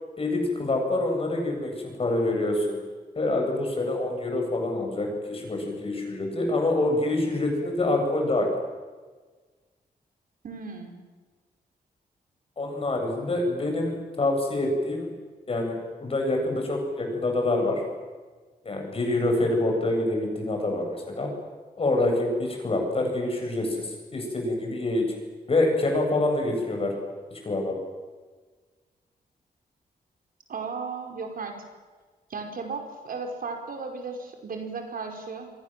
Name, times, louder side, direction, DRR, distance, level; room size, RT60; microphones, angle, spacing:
voice 1, 0.2-2.8 3.2-8.6 12.6-15.1 15.5-17.8 18.6-21.3 21.8-25.1 25.5-26.9 27.3-27.7, left 2 dB, 35° left, 2 dB, 7.9 m, -26 dB
voice 2, 10.4-11.0 30.5-31.6 32.3-35.5, right 4 dB, 65° right, 3 dB, 5.0 m, -35 dB
29.0 x 23.5 x 7.7 m, 1.4 s
wide cardioid pair, 130°, 16 cm